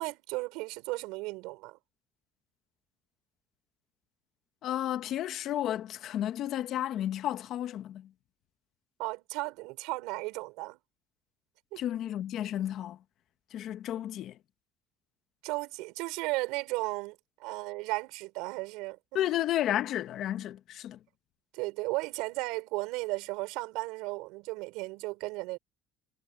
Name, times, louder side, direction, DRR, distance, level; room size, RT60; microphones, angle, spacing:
voice 1, 0.0-1.8 9.0-10.8 11.7-11.8 15.4-19.0 21.5-25.6, right 23 dB, 85° right, 5.2 m, -35 dB
voice 2, 4.6-8.1 11.8-13.0 13.5-14.4 19.1-21.0, left 12 dB, 55° left, 1.2 m, -32 dB
cardioid pair, 135°, 0 cm